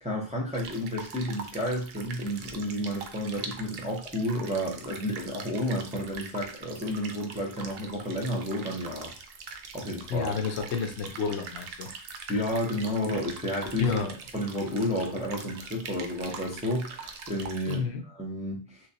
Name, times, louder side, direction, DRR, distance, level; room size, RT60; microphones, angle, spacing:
voice 1, 0.0-9.1 9.7-10.3 12.3-13.9 14.3-17.8 18.1-18.8, equal, 10° right, -3 dB, 0.5 m, -31 dB
sound 1, 0.5-17.8, right 5 dB, 65° right, 0.7 m, -43 dB
voice 2, 10.1-11.9 13.8-14.1 17.7-18.0, left 6 dB, 75° left, 5 dB, 0.9 m, -30 dB
3.2 x 3.1 x 2.7 m, 0.38 s
omnidirectional pair, 1.2 m